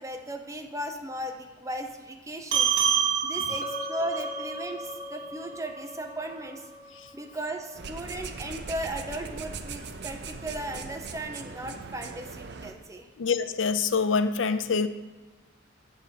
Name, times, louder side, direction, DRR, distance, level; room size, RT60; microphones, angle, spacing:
voice 1, 0.0-2.7 3.2-6.7 7.1-13.1, right 1 dB, 15° right, 3 dB, 0.8 m, -36 dB
sound 1, 2.5-7.3, right 7 dB, 85° right, 2.5 m, -29 dB
Chink clink, 3.6-7.8, left 2 dB, 35° left, 0.9 m, -42 dB
sound 2, 7.7-12.7, right 4 dB, 60° right, 0.6 m, -40 dB
voice 2, 13.2-14.9, left 5 dB, 75° left, 12 dB, 0.5 m, -25 dB
7.9 x 5.6 x 6.5 m, 1.3 s
head